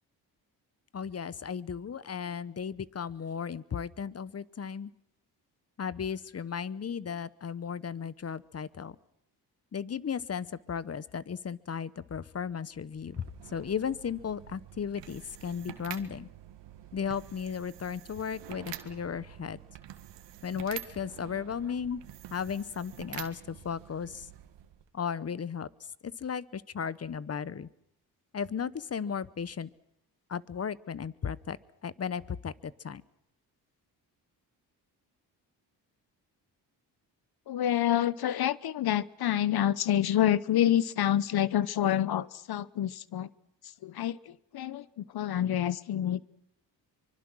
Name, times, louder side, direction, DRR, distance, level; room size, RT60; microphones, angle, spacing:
voice 1, 0.9-4.9 5.8-9.0 9.7-16.3 16.9-19.6 20.4-22.0 22.3-24.3 24.9-25.7 26.0-27.7 28.3-29.7 30.3-31.6 31.8-33.0, left 7 dB, 35° left, 18 dB, 0.9 m, -35 dB
sound 1, 12.9-24.9, right 12 dB, 80° right, 1.8 m, -47 dB
voice 2, 37.5-43.3 43.8-46.2, left 11 dB, 65° left, 19 dB, 0.9 m, -28 dB
24.5 x 24.0 x 6.2 m, 0.77 s
cardioid pair, 70°, 42 cm